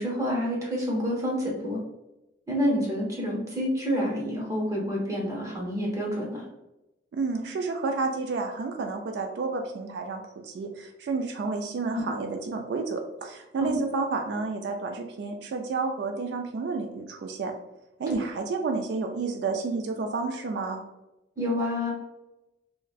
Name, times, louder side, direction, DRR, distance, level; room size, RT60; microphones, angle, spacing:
voice 1, 0.0-1.8 2.5-6.4 11.9-12.0 13.6-13.8 18.1-18.2 21.4-21.9, equal, 20° right, -3 dB, 0.8 m, -28 dB
voice 2, 7.1-17.5 18.0-20.8, right 4 dB, 70° right, 4 dB, 0.3 m, -30 dB
3.0 x 2.5 x 2.4 m, 0.97 s
head